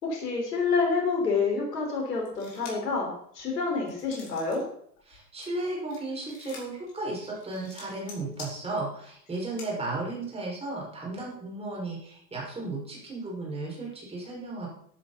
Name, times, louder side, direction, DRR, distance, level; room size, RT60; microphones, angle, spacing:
voice 1, 0.0-4.6, left 4 dB, 70° left, 0 dB, 5.1 m, -28 dB
sound 1, 2.2-2.9 3.4-4.6 5.0-9.7, left 4 dB, 45° left, 6.2 m, -47 dB
voice 2, 5.1-14.7, right 2 dB, 10° right, -3 dB, 5.7 m, -34 dB
13.0 x 12.5 x 4.2 m, 0.65 s
figure-of-eight pair, 100°, 50 cm